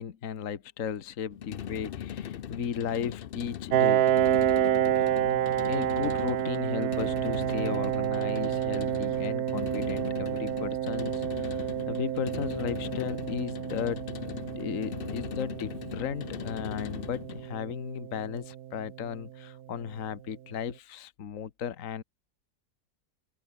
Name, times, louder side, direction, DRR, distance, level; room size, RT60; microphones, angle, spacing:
voice 1, 0.0-4.0 5.1-22.0, left 8 dB, 55° left, 1.6 m, -35 dB
sound 1, 1.3-17.5, left 9 dB, 90° left, 0.5 m, -39 dB
Piano, 3.7-19.1, right 11 dB, 65° right, 1.3 m, -29 dB
open air
omnidirectional pair, 1.8 m